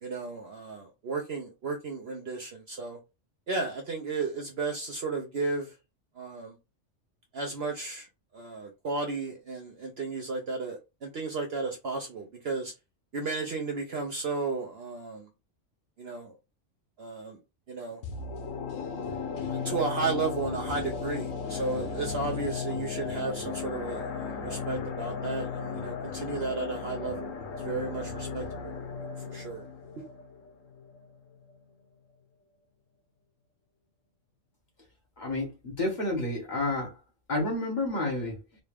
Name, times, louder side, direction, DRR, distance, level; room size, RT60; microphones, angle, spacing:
voice 1, 0.0-3.0 3.5-5.7 6.2-6.6 7.3-8.1 8.3-12.7 13.1-15.3 16.0-16.4 17.0-17.4 17.7-18.0 19.5-28.8 29.3-29.7, right 3 dB, 60° right, 0.9 m, -34 dB
sound 1, 18.0-31.1 31.4-31.5, left 5 dB, 85° left, 1.2 m, -35 dB
voice 2, 35.2-36.9 37.3-38.4, left 2 dB, 35° left, 1.6 m, -30 dB
4.0 x 2.3 x 3.3 m
omnidirectional pair, 1.3 m